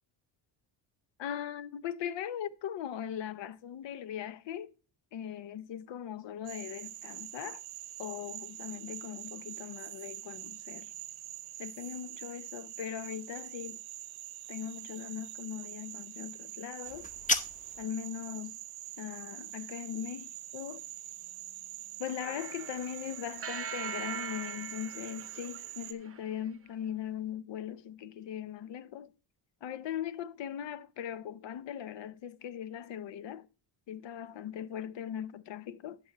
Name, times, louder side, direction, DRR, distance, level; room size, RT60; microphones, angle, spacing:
voice 1, 1.2-4.7 5.1-7.6 8.0-10.9 11.6-13.8 14.5-17.1 17.8-18.6 19.0-20.8 22.0-29.1 29.6-33.5 33.9-36.0, left 9 dB, 60° left, 0.8 m, -40 dB
Frog, 6.4-25.9, right 14 dB, 85° right, 1.0 m, -45 dB
sound 1, 16.8-17.9, left 2 dB, 15° left, 0.8 m, -32 dB
sound 2, 22.2-26.5, right 8 dB, 30° right, 0.8 m, -42 dB
11.5 x 6.8 x 3.0 m
cardioid pair, 95°, 48 cm